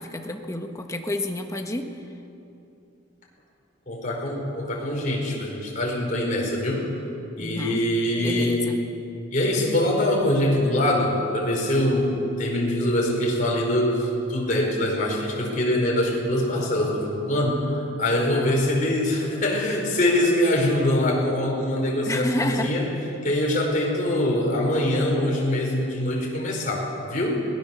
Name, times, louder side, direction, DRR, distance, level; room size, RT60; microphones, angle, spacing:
voice 1, 0.0-1.9 7.4-7.8 8.2-8.7 22.1-22.7, left 1 dB, 15° left, 4 dB, 1.3 m, -29 dB
voice 2, 3.9-6.9 7.4-8.7 9.3-22.9 23.2-27.4, left 1 dB, 40° left, -1 dB, 4.7 m, -23 dB
23.0 x 19.5 x 7.0 m, 2.9 s
head